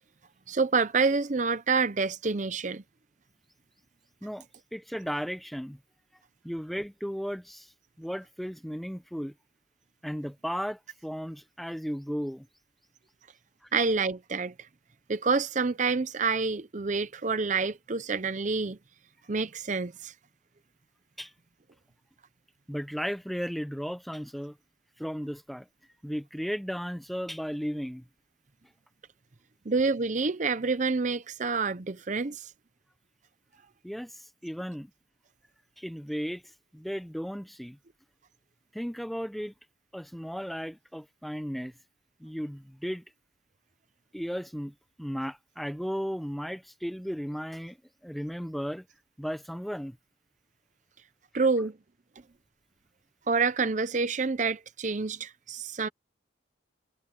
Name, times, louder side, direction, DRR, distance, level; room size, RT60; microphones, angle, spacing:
voice 1, 0.5-2.8 13.7-14.5 15.1-18.8 19.3-20.1 29.7-32.5 51.3-51.8 53.3-55.9, right 4 dB, 40° right, 0.6 m, -27 dB
voice 2, 4.7-5.8 6.4-7.7 8.0-9.3 10.0-12.5 21.2-21.3 22.7-24.6 25.0-25.7 26.0-28.0 33.8-34.9 35.8-37.8 38.7-39.5 39.9-41.7 42.2-43.0 44.1-47.8 48.0-48.8 49.2-50.0, equal, ahead, 0.9 m, -35 dB
head